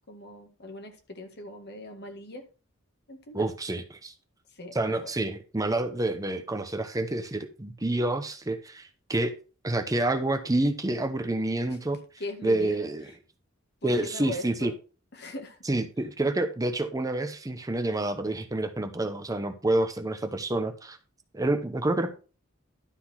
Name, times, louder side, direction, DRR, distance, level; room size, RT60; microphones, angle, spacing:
voice 1, 0.1-2.5 3.1-3.5 4.5-5.1 11.7-11.8 12.2-13.1 13.8-14.7 15.1-15.6, left 1 dB, 55° left, 5 dB, 1.9 m, -40 dB
voice 2, 3.3-4.1 4.7-9.3 9.6-12.0 12.4-13.1 13.8-14.7 15.7-21.0 21.3-22.1, right 2 dB, 15° right, 7 dB, 0.8 m, -28 dB
11.5 x 4.2 x 5.7 m, 0.36 s
head